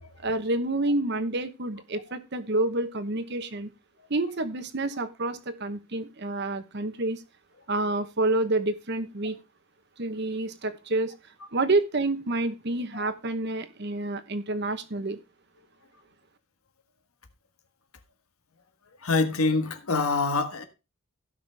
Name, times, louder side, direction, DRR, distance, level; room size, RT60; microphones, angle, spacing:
voice 1, 0.2-3.7 4.1-7.2 7.7-9.4 10.0-11.1 11.5-15.2, right 2 dB, 55° right, 1.0 m, -28 dB
voice 2, 19.0-20.6, left 3 dB, 90° left, 1.5 m, -25 dB
16.5 x 5.9 x 3.4 m
head